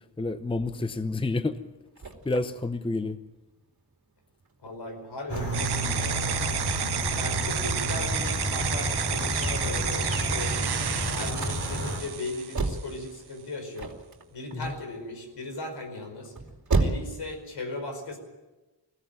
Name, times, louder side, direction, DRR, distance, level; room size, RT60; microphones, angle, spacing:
voice 1, 0.2-1.5 2.3-3.2 14.5-14.7, left 2 dB, 10° left, 10 dB, 0.8 m, -29 dB
sound 1, 0.5-17.4, right 3 dB, 45° right, 2.9 m, -35 dB
voice 2, 4.6-6.4 7.1-10.5 11.1-13.9 14.3-16.3 16.7-18.2, left 2 dB, 70° left, 5 dB, 5.1 m, -37 dB
sound 2, 5.3-12.0, equal, 35° left, 4.7 m, -30 dB
sound 3, 5.5-13.0, right 9 dB, 65° right, 1.0 m, -31 dB
20.0 x 16.0 x 9.2 m, 1.1 s
wide cardioid pair, 105°, 42 cm